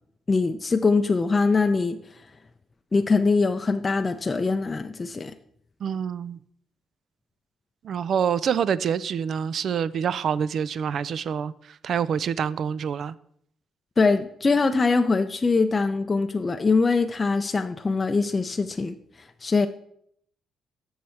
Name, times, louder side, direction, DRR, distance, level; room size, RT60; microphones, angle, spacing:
voice 1, 0.3-2.0 2.9-5.3 14.0-19.0 19.4-19.7, left 4 dB, 30° left, 0.4 m, -22 dB
voice 2, 5.8-6.4 7.8-11.5 11.8-13.1, right 7 dB, 60° right, 0.3 m, -26 dB
7.0 x 6.4 x 4.3 m
cardioid pair, 90°, 0 cm